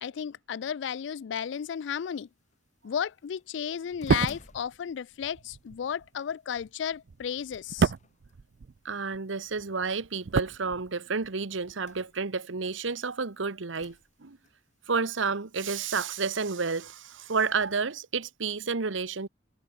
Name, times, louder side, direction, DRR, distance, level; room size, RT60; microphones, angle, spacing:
voice 1, 0.0-2.3 2.8-7.9, left 8 dB, 70° left, 0.4 m, -33 dB
sound 1, 1.4-17.9, left 2 dB, 40° left, 6.0 m, -60 dB
sound 2, 3.9-9.2 9.5-11.3 11.6-11.7, right 5 dB, 60° right, 0.4 m, -31 dB
voice 2, 8.8-14.4 14.9-19.3, right 4 dB, 90° right, 1.1 m, -30 dB
head